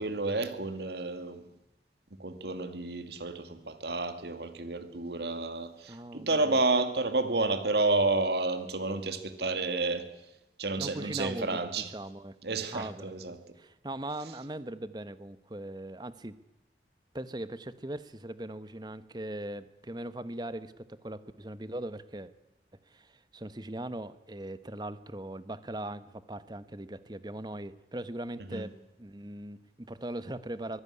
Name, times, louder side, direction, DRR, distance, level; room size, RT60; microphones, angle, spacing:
voice 1, 0.0-1.5 2.2-10.1 10.6-11.9 12.4-13.4 28.5-28.6, right 3 dB, 65° right, 10 dB, 1.9 m, -30 dB
voice 2, 5.9-6.6 10.8-11.6 11.9-12.3 12.7-13.1 13.6-16.3 17.1-22.3 22.9-28.7 29.0-30.8, right 1 dB, 25° right, 14 dB, 1.0 m, -40 dB
23.5 x 16.0 x 9.8 m, 0.92 s
head